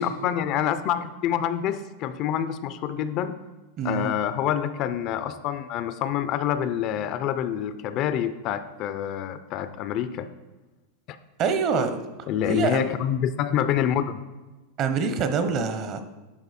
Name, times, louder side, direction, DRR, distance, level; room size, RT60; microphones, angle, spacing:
voice 1, 0.0-3.4 3.8-10.3 11.1-11.2 12.3-14.2, left 9 dB, 40° left, 12 dB, 0.4 m, -27 dB
voice 2, 3.8-4.1 11.4-12.0 12.5-12.8 14.8-16.0, right 5 dB, 40° right, 9 dB, 0.8 m, -25 dB
11.5 x 4.6 x 4.2 m, 1.2 s
supercardioid pair, 135°, 0 cm